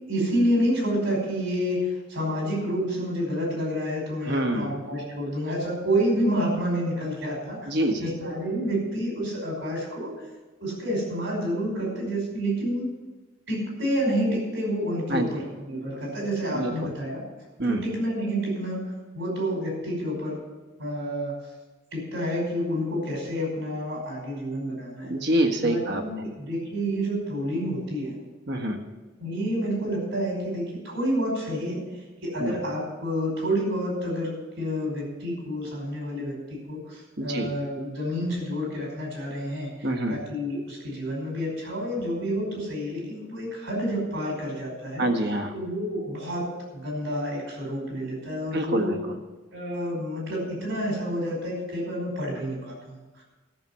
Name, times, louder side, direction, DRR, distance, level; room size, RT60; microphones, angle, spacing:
voice 1, 0.1-7.7 8.0-10.1 10.6-12.9 13.5-17.2 17.7-20.4 20.8-21.3 21.9-25.2 25.6-28.2 29.2-31.8 32.2-45.1 45.5-49.0 49.5-53.2, equal, 70° right, -1 dB, 5.3 m, -29 dB
voice 2, 4.2-4.8 7.7-8.1 15.1-15.3 16.5-16.9 17.6-17.8 25.1-26.0 28.5-28.8 32.4-32.5 37.2-37.5 39.8-40.2 45.0-45.5 48.5-49.1, right 1 dB, 55° right, 4 dB, 1.5 m, -26 dB
13.0 x 6.7 x 8.5 m, 1.2 s
head